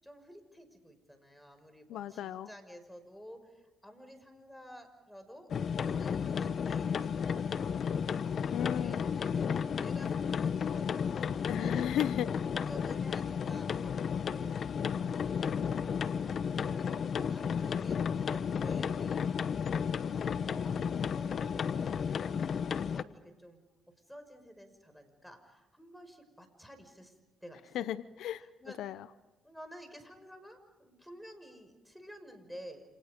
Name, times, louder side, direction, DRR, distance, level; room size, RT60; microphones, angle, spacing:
voice 1, 0.0-5.5 5.8-8.2 8.6-11.9 12.4-14.6 14.9-19.5 19.7-23.6 23.9-27.8 28.6-28.8 29.4-32.8, equal, ahead, 7 dB, 5.7 m, -52 dB
voice 2, 1.9-2.5 8.5-9.0 11.5-12.3 27.7-28.5 28.8-29.1, left 11 dB, 80° left, 14 dB, 0.8 m, -34 dB
sound 1, 5.5-23.0, left 7 dB, 55° left, 1.0 m, -33 dB
28.5 x 28.5 x 5.2 m, 1.1 s
cardioid pair, 90°, 0 cm